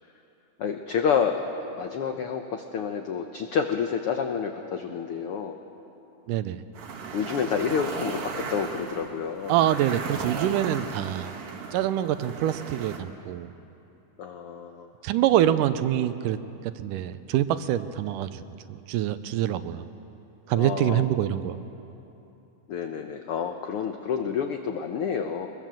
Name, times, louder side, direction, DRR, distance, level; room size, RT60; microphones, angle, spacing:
voice 1, 0.6-1.4 1.8-5.6 7.1-9.6 14.2-14.9 20.5-21.3 22.7-25.5, left 6 dB, 90° left, 5 dB, 1.2 m, -29 dB
voice 2, 6.3-6.6 9.5-11.3 11.7-13.5 15.0-16.4 16.8-18.3 18.9-19.9 20.5-21.6, right 11 dB, 80° right, 12 dB, 2.2 m, -25 dB
sound 1, 6.7-13.0, right 5 dB, 50° right, 2.2 m, -36 dB
22.0 x 21.5 x 7.5 m, 3.0 s
omnidirectional pair, 3.8 m